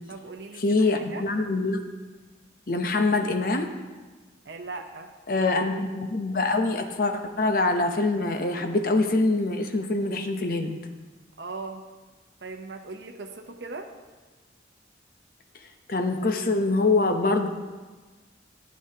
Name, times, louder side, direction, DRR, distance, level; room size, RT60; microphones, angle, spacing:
voice 1, 0.1-1.3 4.4-5.1 11.4-11.8 12.4-13.9, right 3 dB, 70° right, 3 dB, 0.7 m, -39 dB
voice 2, 0.6-1.8 2.7-3.7 5.3-10.8 15.9-17.5, left 3 dB, 50° left, 5 dB, 0.8 m, -24 dB
13.0 x 8.5 x 2.8 m, 1.3 s
head